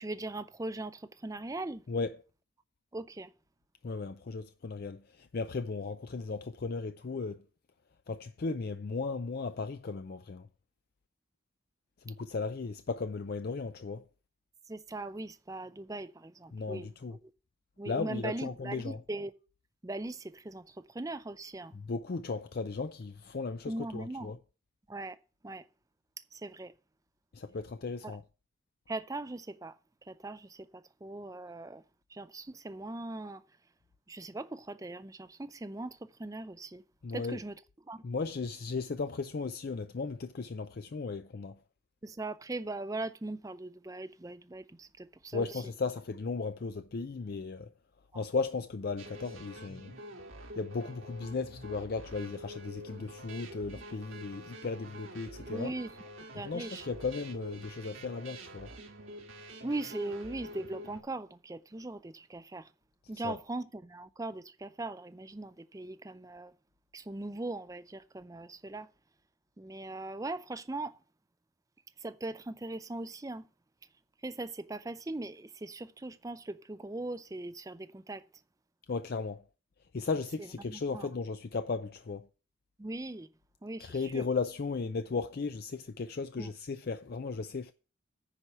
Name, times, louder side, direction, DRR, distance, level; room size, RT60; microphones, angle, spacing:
voice 1, 0.0-1.8 2.9-3.3 14.7-17.2 17.8-19.3 19.8-21.7 23.7-24.3 24.9-25.2 25.4-25.7 26.3-26.7 28.0-28.2 28.9-29.8 30.1-31.8 32.1-33.4 34.1-36.8 37.1-37.6 37.8-38.0 42.0-45.6 48.1-48.2 55.5-55.9 56.3-56.9 59.6-62.7 63.1-66.5 66.9-68.9 69.6-71.0 72.0-73.5 74.2-78.2 80.7-81.1 82.8-83.3 83.6-84.2 86.4-86.5, right 2 dB, 15° right, 0.4 m, -40 dB
voice 2, 1.9-2.2 3.8-7.4 8.1-10.5 12.0-14.0 16.5-17.2 17.9-19.0 21.7-24.4 27.3-28.2 37.0-37.4 38.0-41.6 45.3-47.7 48.1-49.9 50.6-55.7 56.3-58.7 63.2-63.4 78.9-79.4 79.9-82.3 83.8-87.7, left 4 dB, 50° left, 0.4 m, -36 dB
sound 1, 49.0-61.0, right 1 dB, 75° right, 1.7 m, -47 dB
10.0 x 4.7 x 6.9 m
head